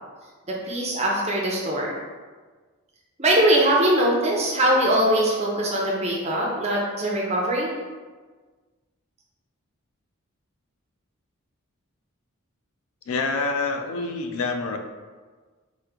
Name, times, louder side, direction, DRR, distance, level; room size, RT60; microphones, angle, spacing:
voice 1, 0.5-1.9 3.2-7.7, right 1 dB, 30° right, -3 dB, 0.5 m, -22 dB
voice 2, 13.1-14.8, left 3 dB, 75° left, 6 dB, 0.3 m, -26 dB
2.9 x 2.1 x 3.5 m, 1.4 s
head